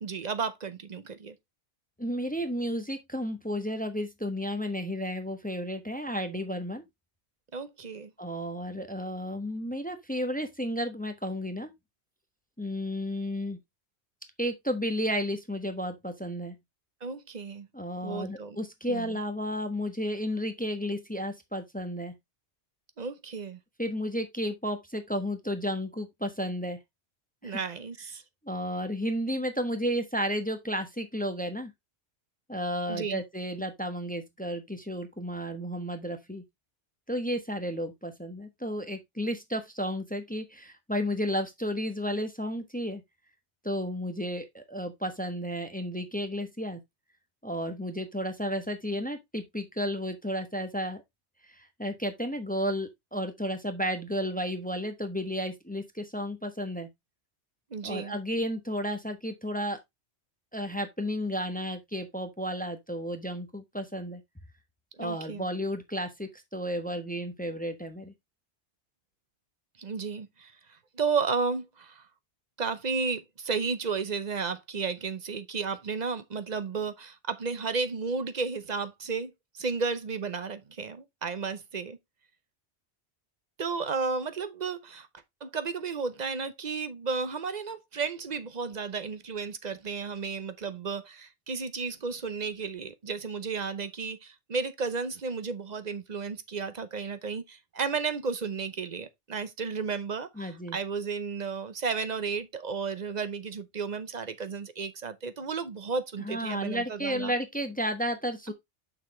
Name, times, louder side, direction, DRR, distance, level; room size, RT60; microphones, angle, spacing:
voice 1, 0.0-1.4 7.5-8.1 17.0-17.7 18.0-18.6 18.9-19.2 23.0-23.6 27.4-28.2 32.9-33.2 57.7-58.1 65.0-65.4 69.8-70.5 70.9-72.0 72.6-82.0 83.6-85.1 85.4-107.3 108.5-108.6, right 5 dB, 45° right, 0.8 m, -33 dB
voice 2, 2.0-6.8 8.2-11.7 12.6-13.6 14.4-16.5 17.7-22.1 23.8-26.8 27.4-27.6 28.4-31.7 32.5-36.4 37.1-43.0 43.6-46.8 47.4-51.0 51.5-56.9 57.8-59.8 60.5-64.2 65.0-68.1 100.4-100.8 106.2-108.5, equal, 10° left, 1.0 m, -32 dB
6.9 x 5.9 x 3.1 m
omnidirectional pair, 1.2 m